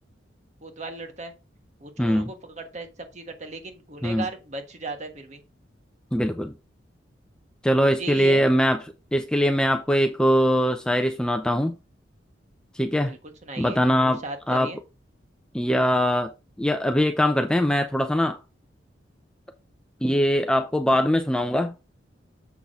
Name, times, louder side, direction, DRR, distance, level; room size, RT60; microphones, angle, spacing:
voice 1, 0.6-1.3 1.8-5.4 7.8-8.5 13.0-14.8, right 2 dB, 40° right, 1.4 m, -37 dB
voice 2, 2.0-2.3 4.0-4.3 6.1-6.5 7.6-8.8 9.1-11.7 12.7-13.1 13.6-14.2 14.5-14.7 15.5-16.3 16.6-18.4 20.0-21.7, equal, 5° left, 0.5 m, -22 dB
7.1 x 6.0 x 3.7 m
head